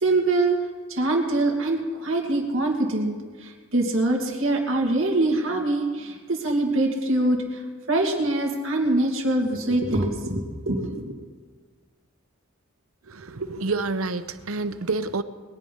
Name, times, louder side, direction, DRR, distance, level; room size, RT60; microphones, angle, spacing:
voice 1, 0.0-0.6 0.9-3.2 3.4-7.6 7.9-11.1, right 2 dB, 70° right, 1 dB, 2.6 m, -24 dB
voice 2, 13.0-15.2, right 3 dB, 90° right, 11 dB, 0.8 m, -28 dB
21.5 x 9.0 x 5.5 m, 1.5 s
head